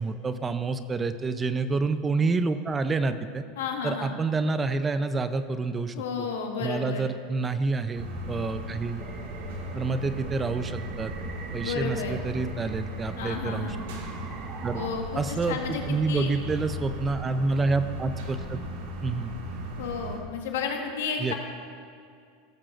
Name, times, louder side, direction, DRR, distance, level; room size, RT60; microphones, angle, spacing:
voice 1, 0.0-3.4 3.8-6.3 6.6-9.0 9.7-11.1 11.5-13.8 14.6-14.8 15.2-18.6 19.0-19.3 21.2-21.3, right 3 dB, 20° right, 11 dB, 0.5 m, -28 dB
voice 2, 3.6-4.2 5.9-7.1 11.6-12.2 13.2-13.8 14.7-15.8 16.1-16.3 19.8-21.3, left 6 dB, 85° left, 2 dB, 1.4 m, -32 dB
sound 1, 7.9-20.2, equal, 75° right, 1.7 m, -37 dB
sound 2, 9.0-14.9, right 5 dB, 40° right, 1.0 m, -44 dB
17.0 x 7.3 x 2.5 m, 2.2 s
supercardioid pair, 115°, 0 cm